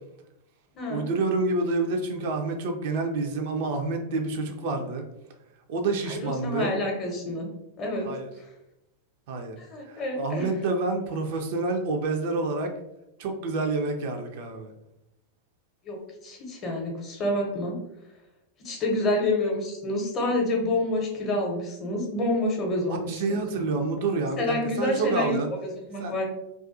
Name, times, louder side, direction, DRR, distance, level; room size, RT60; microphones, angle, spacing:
voice 1, 0.9-5.0 5.7-6.7 8.0-8.3 9.3-9.6 9.8-12.7 13.2-14.7 22.9-25.5 26.0-26.1, right 3 dB, 50° right, 4 dB, 0.3 m, -28 dB
voice 2, 6.1-7.5 7.8-8.1 9.6-10.5 15.8-16.0 16.2-17.8 18.6-23.4 24.4-26.3, left 1 dB, 30° left, 0 dB, 0.7 m, -28 dB
2.3 x 2.2 x 2.5 m, 0.87 s
figure-of-eight pair, 90°, 0 cm